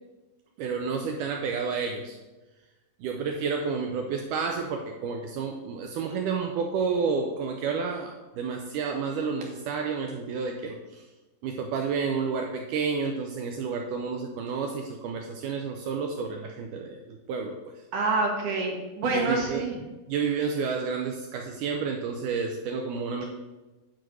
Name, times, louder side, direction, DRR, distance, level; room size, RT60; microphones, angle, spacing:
voice 1, 0.6-2.2 3.0-11.1 11.4-17.7 19.0-19.6 20.1-23.3, right 5 dB, 85° right, 3 dB, 1.9 m, -30 dB
voice 2, 17.9-19.7, right 3 dB, 60° right, 0 dB, 3.0 m, -27 dB
9.1 x 4.7 x 6.1 m, 1.1 s
omnidirectional pair, 4.3 m